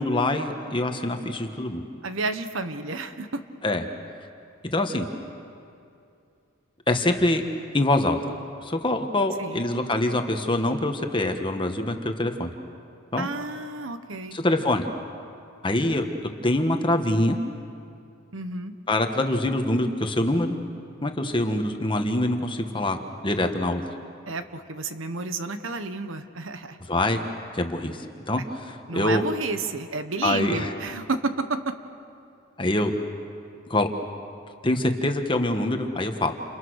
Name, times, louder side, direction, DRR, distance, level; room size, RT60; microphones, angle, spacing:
voice 1, 0.0-1.8 3.6-3.8 4.6-5.1 6.9-7.4 7.7-8.2 8.6-12.5 13.1-13.3 14.3-14.9 15.6-16.0 16.4-17.4 18.9-20.6 21.0-23.0 23.2-23.8 26.9-27.2 27.5-28.0 28.3-29.2 30.2-30.7 32.6-32.9 33.7-33.9 34.6-36.3, left 1 dB, 25° left, 5 dB, 1.5 m, -24 dB
voice 2, 2.0-3.4 9.4-9.6 13.2-14.4 18.3-18.7 24.3-26.8 28.9-31.7, right 3 dB, 70° right, 9 dB, 1.3 m, -31 dB
29.0 x 29.0 x 6.5 m, 2.5 s
head